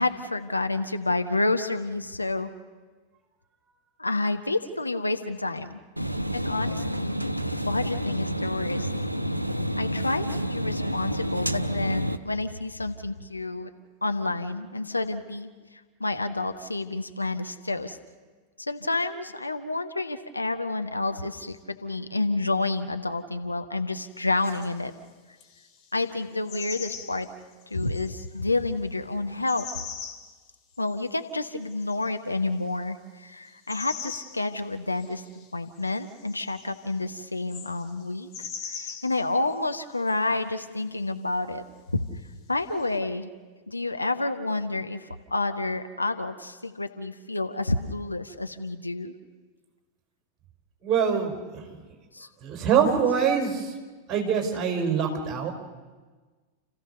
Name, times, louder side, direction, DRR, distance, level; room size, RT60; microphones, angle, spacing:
voice 1, 0.0-2.5 4.0-5.8 6.3-7.2 7.6-8.9 9.8-13.7 14.0-15.5 16.0-18.0 18.6-24.9 25.9-27.3 27.7-29.7 30.8-35.2 35.5-41.6 41.9-42.0 42.5-43.3 43.7-49.1 52.1-52.3, left 2 dB, 85° left, 7 dB, 1.1 m, -29 dB
sound 1, 6.0-12.2, equal, 90° right, 0.7 m, -29 dB
sound 2, 24.4-24.8 25.4-25.9 26.5-28.3 29.5-30.3 30.7-31.1 31.7-32.1 33.5-34.4 34.9-35.5 35.8-38.0 38.3-39.3 39.5-39.8 40.1-40.2 42.7-43.0, left 7 dB, 35° left, 2.5 m, -41 dB
voice 2, 50.8-51.3 52.4-53.7 54.1-55.5, right 7 dB, 30° right, 3 dB, 4.5 m, -24 dB
29.5 x 15.0 x 6.7 m, 1.4 s
figure-of-eight pair, 90°, 0 cm